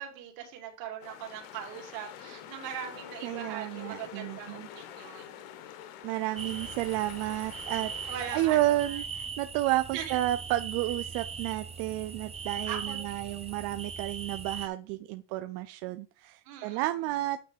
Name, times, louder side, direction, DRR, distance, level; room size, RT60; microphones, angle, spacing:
voice 1, 0.0-5.4 8.1-9.0 9.9-10.2 12.7-13.5 16.5-16.8, right 9 dB, 85° right, 2 dB, 2.5 m, -41 dB
sound 1, 1.0-8.6, left 10 dB, 75° left, 1.1 m, -46 dB
voice 2, 3.2-4.7 6.0-17.5, right 16 dB, 70° right, 10 dB, 0.6 m, -31 dB
sound 2, 6.4-14.7, right 6 dB, 15° right, 0.5 m, -40 dB
9.1 x 3.3 x 5.0 m, 0.37 s
supercardioid pair, 115°, 47 cm